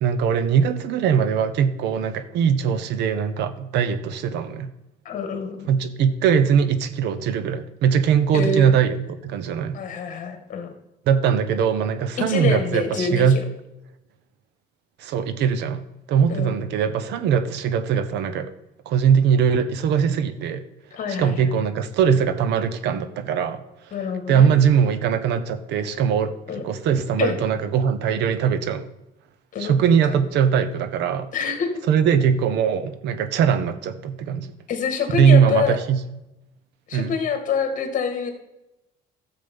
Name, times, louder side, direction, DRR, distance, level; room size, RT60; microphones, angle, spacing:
voice 1, 0.0-4.7 5.7-9.0 9.2-9.8 11.1-13.4 15.0-18.5 18.9-20.6 21.1-23.6 24.3-28.9 29.6-31.3 31.9-34.5 35.1-36.0 36.9-37.2, right 7 dB, 80° right, 12 dB, 1.0 m, -21 dB
voice 2, 5.1-5.7 8.3-8.7 9.7-10.7 12.2-13.4 16.3-16.6 20.9-21.6 23.9-24.5 26.5-26.6 27.2-27.4 29.5-29.8 30.1-30.2 31.3-31.7 34.7-35.8 36.9-38.3, left 5 dB, 50° left, 6 dB, 2.0 m, -26 dB
12.5 x 7.5 x 5.5 m, 0.93 s
cardioid pair, 130°, 17 cm